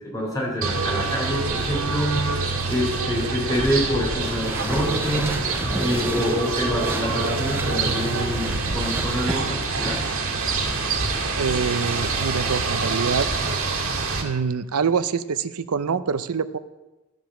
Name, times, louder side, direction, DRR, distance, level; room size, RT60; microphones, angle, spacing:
voice 1, 0.0-2.3 2.7-5.4 5.8-10.0, equal, 15° left, -4 dB, 3.7 m, -26 dB
sound 1, 0.6-14.2, right 3 dB, 65° right, 1.9 m, -26 dB
sound 2, 4.2-9.5, right 2 dB, 10° right, 0.4 m, -33 dB
voice 2, 11.4-13.3 14.2-16.6, right 5 dB, 85° right, 14 dB, 0.6 m, -25 dB
12.5 x 5.2 x 7.6 m, 1.1 s
head